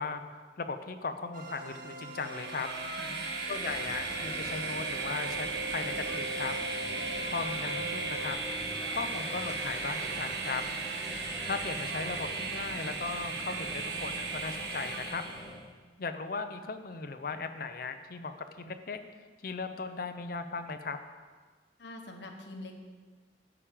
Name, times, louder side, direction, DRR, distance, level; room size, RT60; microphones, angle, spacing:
voice 1, 0.0-2.7 3.5-6.5 7.3-8.4 8.9-10.6 11.4-15.2 16.0-19.0 19.4-21.0, left 4 dB, 50° left, 8 dB, 0.7 m, -37 dB
sound 1, 1.3-8.3, right 1 dB, 45° right, 0.8 m, -42 dB
Train, 2.1-15.6, right 4 dB, 60° right, 1.3 m, -36 dB
voice 2, 2.8-3.3 21.8-22.8, left 1 dB, 65° left, 3 dB, 1.2 m, -45 dB
sound 2, 3.5-15.6, equal, 25° left, 1.2 m, -45 dB
11.5 x 5.0 x 7.5 m, 1.4 s
head